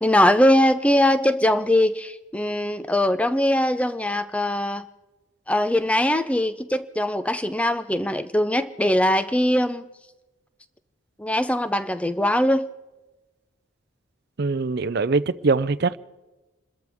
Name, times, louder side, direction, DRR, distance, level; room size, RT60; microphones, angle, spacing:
voice 1, 0.0-4.9 5.5-9.9 11.2-12.7, left 1 dB, 5° left, 0.6 m, -21 dB
voice 2, 14.4-16.0, right 4 dB, 50° right, 0.5 m, -22 dB
27.5 x 13.5 x 3.6 m
head